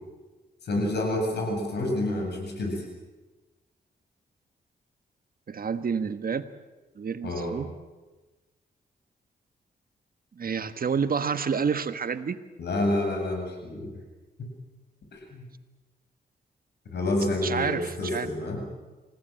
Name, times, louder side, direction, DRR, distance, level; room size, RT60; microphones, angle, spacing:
voice 1, 0.7-2.8 7.2-7.5 12.6-13.9 14.4-14.5 15.1-15.5 16.9-18.6, left 1 dB, 75° left, 2 dB, 7.9 m, -28 dB
voice 2, 5.5-6.5 7.0-7.7 10.3-12.4 17.4-18.3, right 6 dB, 55° right, 11 dB, 1.6 m, -29 dB
27.0 x 17.0 x 9.1 m, 1.2 s
cardioid pair, 65°, 17 cm